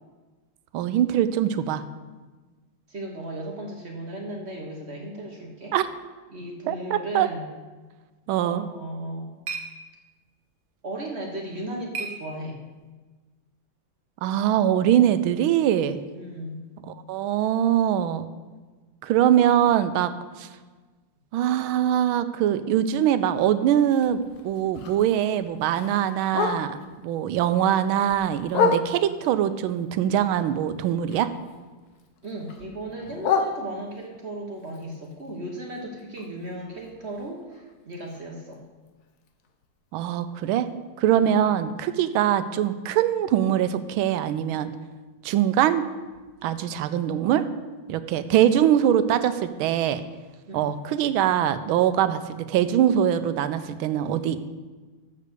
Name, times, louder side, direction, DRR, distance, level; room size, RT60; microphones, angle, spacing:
voice 1, 0.7-1.8 5.7-5.9 6.7-7.3 8.3-8.6 14.2-16.0 16.9-18.3 19.0-20.1 20.4-20.5 21.3-26.8 27.0-31.3 39.9-40.7 41.0-44.7 45.2-45.9 46.4-47.4 47.9-50.0 50.5-54.4, right 10 dB, 85° right, 12 dB, 1.4 m, -22 dB
voice 2, 2.9-5.7 6.3-7.4 8.4-9.3 10.8-12.6 16.1-16.6 32.2-38.6 41.2-41.3 50.5-50.8, right 1 dB, 40° right, 0 dB, 1.0 m, -36 dB
sound 1, 8.7-12.9, right 4 dB, 70° right, 1.6 m, -40 dB
Bark, 23.8-27.0 27.4-29.3 29.7-31.6 31.8-34.2 34.6-38.5 38.9-39.0 39.3-39.6 40.1-40.2 40.5-40.6 41.1-41.2, left 5 dB, 60° left, 1.1 m, -31 dB
7.3 x 6.7 x 6.6 m, 1.3 s
omnidirectional pair, 2.2 m